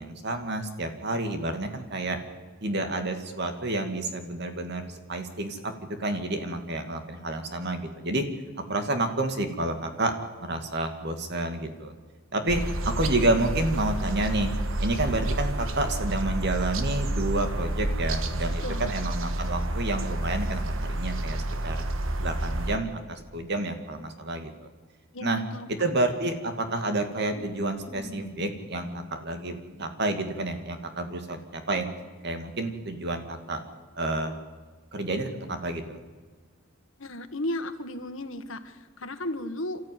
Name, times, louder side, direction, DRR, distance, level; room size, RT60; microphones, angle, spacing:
voice 1, 0.0-2.2 2.6-5.7 6.0-8.2 8.7-10.1 10.4-11.9 12.3-14.5 14.8-21.8 22.2-24.7 25.2-25.4 25.8-31.9 32.2-33.6 34.0-34.3 34.9-36.0, right 2 dB, 55° right, 6 dB, 2.4 m, -29 dB
sound 1, 12.5-22.8, right 1 dB, 75° right, 1.4 m, -29 dB
voice 2, 18.6-18.9 25.1-25.7 37.0-39.9, left 1 dB, 70° left, 10 dB, 1.6 m, -35 dB
sound 2, 27.3-31.9, left 1 dB, ahead, 4.4 m, -48 dB
28.0 x 13.5 x 9.5 m, 1.4 s
head